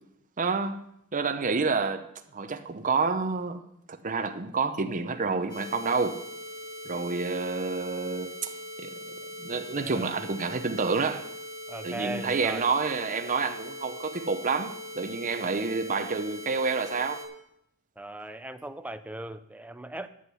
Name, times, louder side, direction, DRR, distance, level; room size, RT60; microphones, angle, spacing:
voice 1, 0.4-0.8 1.1-2.1 2.3-3.6 3.9-6.2 6.8-8.5 8.8-11.3 11.8-17.2, right 4 dB, 35° right, 0.7 m, -29 dB
sound 1, 5.5-17.3, left 1 dB, 20° left, 3.0 m, -41 dB
voice 2, 6.9-7.3 9.7-10.1 11.7-12.7 18.0-20.1, right 1 dB, 5° right, 0.5 m, -39 dB
11.0 x 8.0 x 5.6 m
head